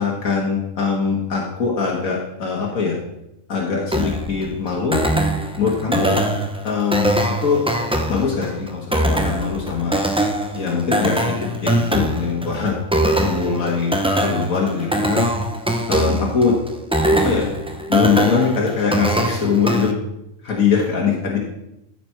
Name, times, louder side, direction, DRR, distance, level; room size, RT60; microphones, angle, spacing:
voice 1, 0.0-3.0 3.5-5.0 5.6-6.2 6.6-7.6 8.1-9.9 10.5-11.3 11.6-12.7 13.2-15.3 15.9-16.6 17.1-17.5 17.9-19.9 20.4-21.4, left 5 dB, 85° left, -2 dB, 1.8 m, -22 dB
sound 1, 3.9-19.9, right 1 dB, 10° right, 0.3 m, -22 dB
13.5 x 5.1 x 4.4 m, 0.86 s
omnidirectional pair, 1.4 m